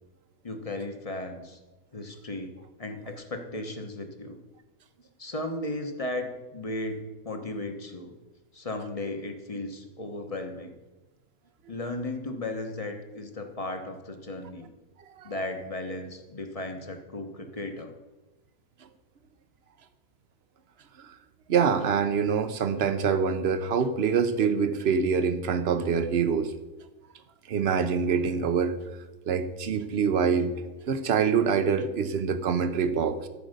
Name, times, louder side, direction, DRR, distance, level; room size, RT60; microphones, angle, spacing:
voice 1, 0.4-1.6 1.9-2.5 2.8-4.4 5.2-8.2 8.5-10.7 11.7-14.7 15.2-17.9, left 2 dB, 25° left, 5 dB, 1.0 m, -35 dB
voice 2, 21.5-26.5 27.5-28.8 29.2-30.5 30.9-33.3, right 6 dB, 55° right, 10 dB, 0.9 m, -25 dB
13.5 x 5.0 x 6.5 m, 1.1 s
omnidirectional pair, 1.6 m